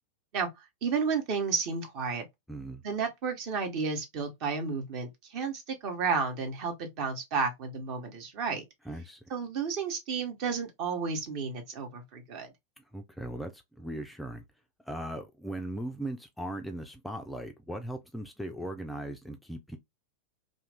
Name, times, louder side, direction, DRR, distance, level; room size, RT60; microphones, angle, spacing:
voice 1, 0.8-2.2 2.8-8.6 9.3-12.5, right 5 dB, 45° right, 1.0 m, -32 dB
voice 2, 2.5-2.8 8.8-9.3 12.8-14.4 14.8-19.8, right 1 dB, 5° left, 0.4 m, -38 dB
2.6 x 2.4 x 3.3 m
figure-of-eight pair, 90°, 0 cm